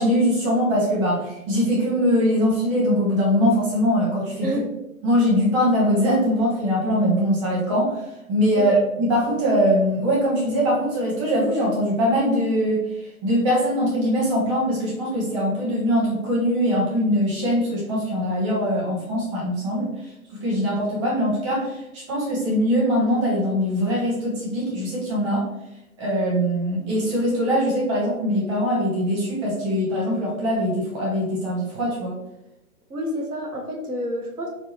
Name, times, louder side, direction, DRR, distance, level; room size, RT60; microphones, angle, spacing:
voice 1, 0.0-4.5 5.0-7.9 8.3-12.8 13.2-19.9 20.4-25.5 26.0-32.1, equal, 20° right, -5 dB, 1.0 m, -22 dB
voice 2, 32.9-34.5, equal, 85° right, 0 dB, 1.1 m, -28 dB
4.8 x 2.3 x 3.0 m, 0.91 s
figure-of-eight pair, 135°, 44 cm